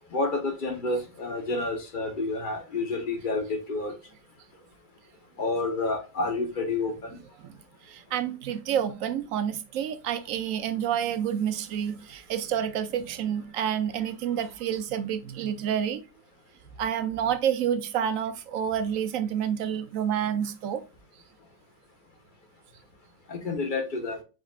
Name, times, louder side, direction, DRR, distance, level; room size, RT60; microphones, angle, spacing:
voice 1, 0.1-3.9 5.4-7.2 23.3-24.2, left 3 dB, 40° left, 1.1 m, -29 dB
voice 2, 7.8-16.0 16.8-20.8, right 9 dB, 70° right, 1.0 m, -29 dB
5.1 x 4.3 x 2.3 m
omnidirectional pair, 1.5 m